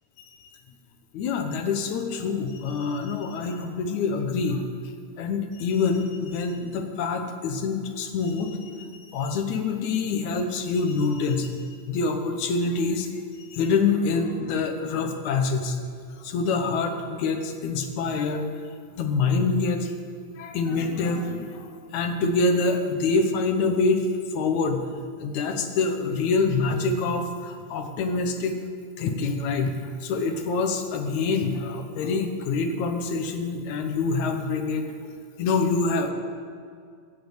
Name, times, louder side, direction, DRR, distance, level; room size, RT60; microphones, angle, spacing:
voice 1, 1.1-4.7 5.2-13.1 13.4-15.8 16.2-18.5 18.9-19.9 20.4-24.8 25.2-28.6 29.0-34.9 35.4-36.1, left 4 dB, 75° left, 5 dB, 2.4 m, -26 dB
15.5 x 8.5 x 8.1 m, 2.2 s
omnidirectional pair, 3.4 m